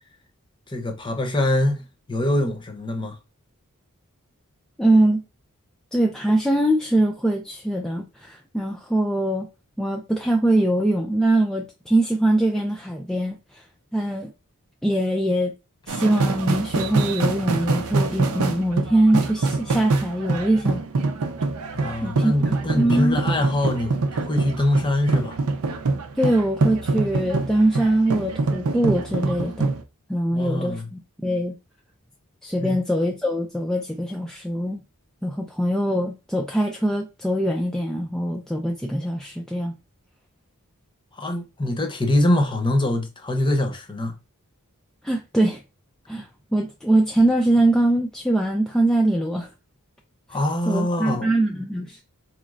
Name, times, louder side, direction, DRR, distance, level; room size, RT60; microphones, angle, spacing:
voice 1, 0.7-3.1 21.7-23.9 24.2-25.4 30.3-30.9 32.6-32.8 41.2-44.1 50.3-51.3, left 1 dB, 20° left, 0.7 m, -24 dB
voice 2, 4.8-5.2 5.9-9.5 9.8-13.6 13.9-14.3 14.8-15.5 15.9-20.8 22.0-23.2 26.2-29.7 30.1-31.5 32.4-34.8 35.2-39.7 45.0-45.6 46.1-49.5 50.7-52.0, right 1 dB, ahead, 0.3 m, -22 dB
sound 1, 15.9-29.8, right 3 dB, 70° right, 0.5 m, -25 dB
4.1 x 3.1 x 2.5 m
head